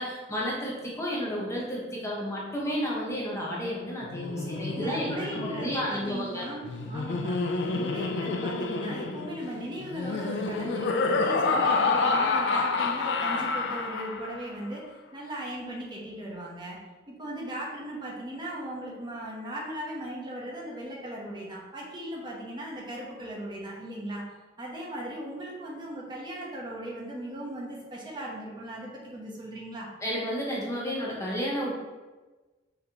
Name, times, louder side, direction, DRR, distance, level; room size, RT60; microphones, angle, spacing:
voice 1, 0.0-6.4 30.0-31.7, equal, 15° left, -4 dB, 0.8 m, -32 dB
Laughter, 4.0-14.5, left 3 dB, 70° left, 0.4 m, -29 dB
voice 2, 4.7-24.3 24.6-29.9, right 1 dB, 25° right, -4 dB, 0.9 m, -38 dB
5.7 x 3.2 x 2.8 m, 1.2 s
head